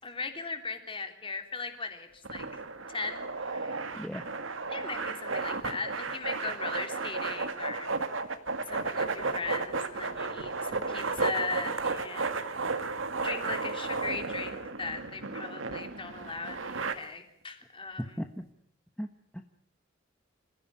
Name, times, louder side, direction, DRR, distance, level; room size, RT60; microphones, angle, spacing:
voice 1, 0.0-2.5 2.9-3.9 4.7-7.9 8.7-12.8 13.2-18.2, left 4 dB, 25° left, 5 dB, 3.3 m, -38 dB
sound 1, 2.2-16.9, right 4 dB, 75° right, 2.0 m, -33 dB
voice 2, 4.0-4.3 18.0-18.4 19.0-19.1 19.3-19.4, equal, 5° left, 5 dB, 1.2 m, -36 dB
27.0 x 15.5 x 9.6 m, 0.67 s
head